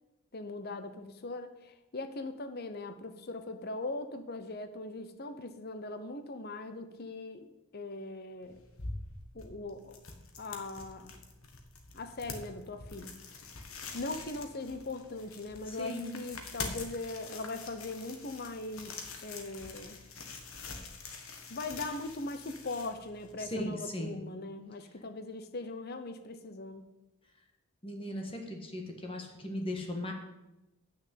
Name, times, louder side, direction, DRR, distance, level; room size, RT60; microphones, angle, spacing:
voice 1, 0.3-7.5 7.7-8.6 9.3-10.0 10.4-11.1 11.9-13.1 13.9-20.0 21.5-26.9, left 2 dB, 45° left, 9 dB, 0.8 m, -40 dB
sound 1, 8.4-23.6, left 4 dB, 70° left, 1.6 m, -45 dB
voice 2, 15.7-16.1 23.4-24.2 27.8-30.1, left 1 dB, 25° left, 3 dB, 1.6 m, -37 dB
9.2 x 6.4 x 8.4 m, 0.98 s
head